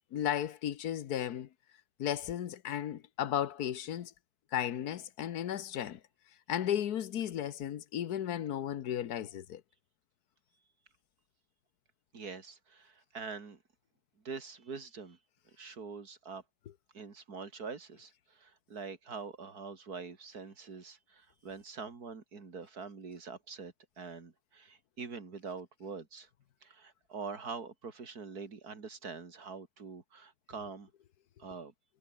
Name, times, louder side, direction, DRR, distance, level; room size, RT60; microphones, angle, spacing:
voice 1, 0.1-1.5 2.0-4.1 4.5-6.0 6.5-9.6, left 10 dB, 85° left, 1.5 m, -34 dB
voice 2, 12.1-13.6 14.2-15.2 15.6-16.4 16.9-26.3 26.6-30.9 31.4-31.7, right 5 dB, 85° right, 3.1 m, -44 dB
omnidirectional pair, 1.6 m